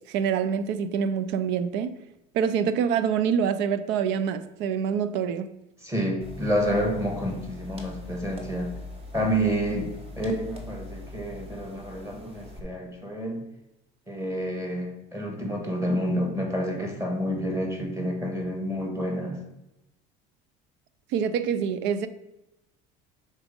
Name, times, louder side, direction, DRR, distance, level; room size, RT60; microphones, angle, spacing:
voice 1, 0.1-2.0 2.3-5.5 21.1-22.1, right 7 dB, 70° right, 0.6 m, -26 dB
voice 2, 5.8-8.8 9.1-13.4 14.1-19.4, equal, 15° right, 1.7 m, -29 dB
sound 1, 6.2-12.6, left 2 dB, 30° right, 1.4 m, -42 dB
6.0 x 4.2 x 5.2 m
cardioid pair, 120°, 19 cm